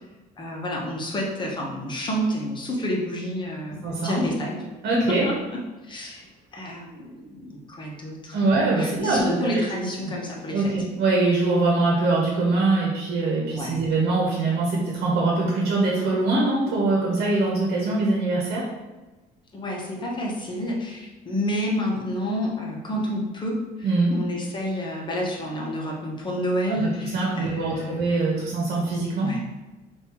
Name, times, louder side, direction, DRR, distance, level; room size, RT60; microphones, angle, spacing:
voice 1, 0.4-4.6 5.1-5.3 5.8-6.3 6.5-8.4 8.8-10.7 13.5-13.8 19.5-28.0 29.2-29.4, equal, 30° left, -2 dB, 1.0 m, -29 dB
voice 2, 3.8-4.3 4.8-5.2 8.3-9.7 10.5-18.6 23.8-24.2 26.8-29.3, right 2 dB, 70° right, -3 dB, 1.1 m, -23 dB
5.3 x 2.7 x 3.0 m, 1.1 s
cardioid pair, 110°, 17 cm